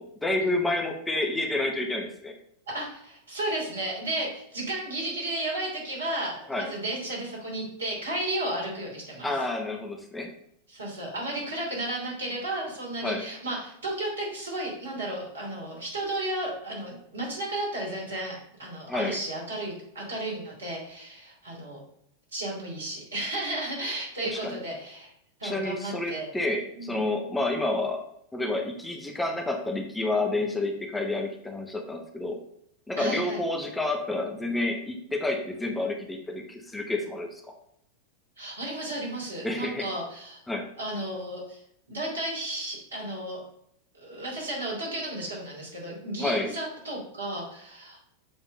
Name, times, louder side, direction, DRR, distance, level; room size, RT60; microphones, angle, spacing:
voice 1, 0.0-2.3 6.5-6.7 9.2-10.3 13.0-13.2 18.9-19.2 24.3-24.6 25.4-28.0 28.3-32.4 32.9-37.4 39.4-39.9 40.5-40.6 46.2-46.5, left 2 dB, 10° left, 3 dB, 0.9 m, -29 dB
voice 2, 2.7-9.5 10.7-21.8 22.3-25.1 25.4-26.3 26.7-27.0 33.0-33.4 38.4-40.4 40.8-41.6 41.9-43.4 43.9-48.0, right 1 dB, 70° right, -3 dB, 2.8 m, -33 dB
7.1 x 3.5 x 5.3 m, 0.73 s
figure-of-eight pair, 90°, 0 cm